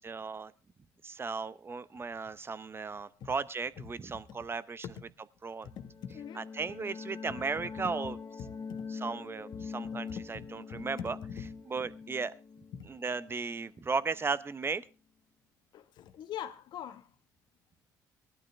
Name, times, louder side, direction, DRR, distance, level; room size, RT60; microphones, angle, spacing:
voice 1, 0.1-0.5 1.0-4.8 5.4-5.7 6.4-8.2 8.9-11.2 11.7-12.3 12.9-14.8, right 4 dB, 30° right, 0.9 m, -36 dB
voice 2, 5.6-6.4 8.7-8.9 9.5-11.5 12.7-12.9 15.7-17.1, left 9 dB, 65° left, 1.3 m, -44 dB
sound 1, 5.7-14.2, left 5 dB, 35° left, 1.9 m, -43 dB
19.5 x 12.0 x 3.4 m
supercardioid pair, 70°, 8 cm